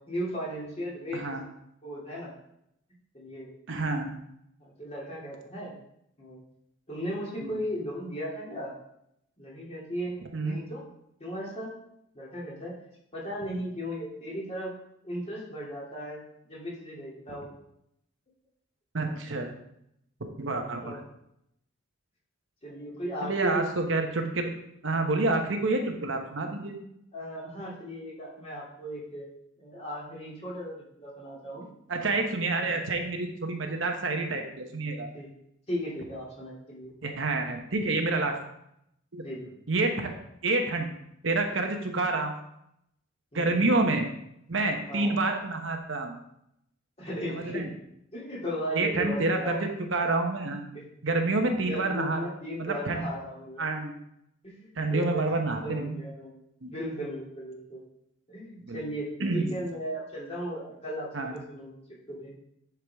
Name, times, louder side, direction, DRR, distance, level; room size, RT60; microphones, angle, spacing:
voice 1, 0.1-1.4 1.8-2.3 3.1-3.5 4.6-5.7 6.2-6.4 6.9-8.7 9.4-10.2 10.4-10.8 11.2-11.7 12.1-12.7 13.1-14.7 15.0-17.5 20.8-21.0 22.6-23.6 27.1-29.3 29.6-31.6 32.5-32.8 35.1-35.3 35.7-36.9 39.2-39.5 43.3-43.8 44.9-45.1 47.0-47.6 48.1-49.6 50.2-50.3 50.7-50.8 51.6-53.6 54.4-56.3 56.7-57.8 58.3-61.7 62.1-62.3, equal, 35° left, -6 dB, 2.7 m, -36 dB
voice 2, 3.7-4.1 7.4-7.5 10.3-10.6 18.9-19.5 20.4-21.0 23.2-24.5 24.8-26.8 31.9-35.1 37.0-38.4 39.1-39.2 39.7-40.1 40.4-40.9 41.2-42.4 43.3-44.1 44.5-46.2 47.3-47.7 48.7-50.7 51.0-52.2 52.6-53.1 53.6-53.9 54.8-56.0 56.6-56.7 58.6-58.8 59.2-59.6 61.1-61.3, right 2 dB, 70° right, 3 dB, 1.0 m, -28 dB
10.0 x 4.8 x 3.5 m, 0.77 s
head